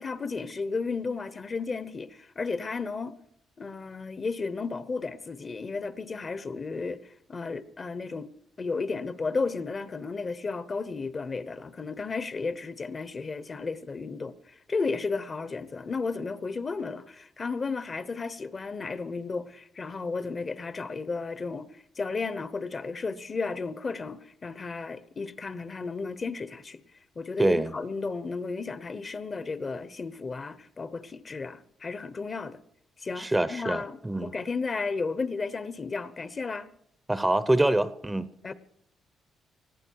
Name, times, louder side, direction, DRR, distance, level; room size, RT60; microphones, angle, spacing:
voice 1, 0.0-3.1 3.6-8.3 8.6-26.8 27.2-32.6 33.0-36.7 38.4-38.5, left 4 dB, 35° left, 1.0 m, -33 dB
voice 2, 27.4-27.7 33.2-34.3 37.1-38.3, right 1 dB, 10° right, 0.8 m, -25 dB
19.5 x 14.5 x 4.7 m
cardioid pair, 90°, 0 cm